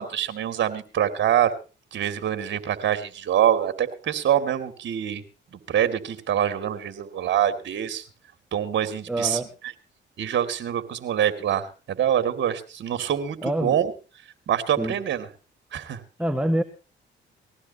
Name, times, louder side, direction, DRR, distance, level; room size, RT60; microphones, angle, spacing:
voice 1, 0.0-1.5 1.9-5.2 5.5-8.0 8.5-9.4 10.2-13.9 14.5-15.3 15.7-16.0, right 10 dB, 65° right, 10 dB, 2.6 m, -25 dB
voice 2, 9.1-9.5 13.4-13.8 14.8-14.9 16.2-16.6, right 1 dB, 5° right, 7 dB, 1.6 m, -25 dB
20.5 x 16.5 x 2.9 m, 0.34 s
cardioid pair, 90°, 20 cm